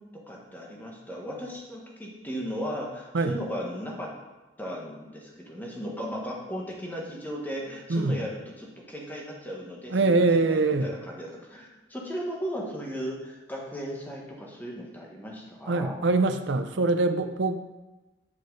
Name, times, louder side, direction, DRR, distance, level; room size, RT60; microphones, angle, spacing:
voice 1, 0.3-4.1 4.6-15.9, equal, 10° left, -2 dB, 1.3 m, -36 dB
voice 2, 7.9-8.2 9.9-10.9 15.7-17.6, right 3 dB, 75° right, 9 dB, 0.6 m, -23 dB
9.7 x 5.4 x 3.9 m, 1.1 s
head